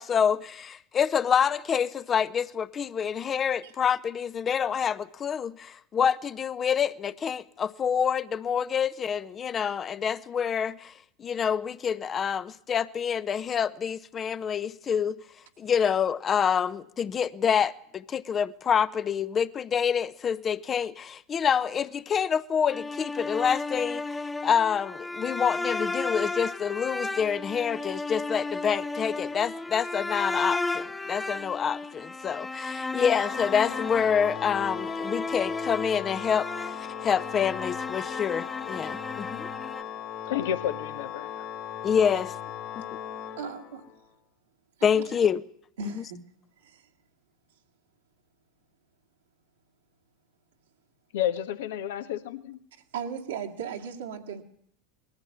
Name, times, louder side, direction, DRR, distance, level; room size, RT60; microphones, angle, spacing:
voice 1, 0.0-10.9 11.2-15.2 15.6-24.2 24.4-39.5 41.8-42.3 42.8-42.9 44.8-45.4, left 7 dB, 30° left, 0.9 m, -27 dB
sound 1, 22.7-39.8, left 3 dB, 10° left, 0.8 m, -34 dB
Organ, 33.1-44.0, left 9 dB, 50° left, 3.3 m, -38 dB
voice 2, 40.3-41.5 51.1-52.6, left 10 dB, 70° left, 1.4 m, -31 dB
voice 3, 43.4-43.9 44.8-45.1 45.8-46.2 46.6-46.9 52.9-54.4, right 6 dB, 80° right, 2.3 m, -37 dB
20.5 x 14.5 x 9.6 m
hypercardioid pair, 85°, 0 cm